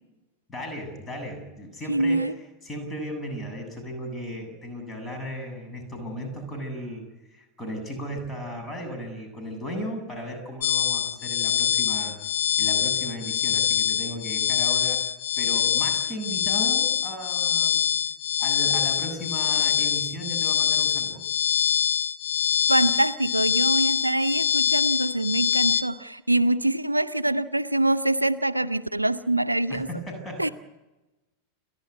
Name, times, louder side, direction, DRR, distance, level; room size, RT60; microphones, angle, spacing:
voice 1, 0.5-2.3 2.6-12.2 12.6-15.0 15.4-17.9 18.4-21.2 29.7-30.5, equal, 15° left, 5 dB, 7.7 m, -36 dB
voice 2, 1.9-2.3 22.7-29.9 30.4-30.5, right 1 dB, 85° right, 14 dB, 0.7 m, -24 dB
sound 1, 10.6-25.8, left 9 dB, 60° left, 1.2 m, -24 dB
30.0 x 12.0 x 9.5 m, 1.1 s
figure-of-eight pair, 90°, 0 cm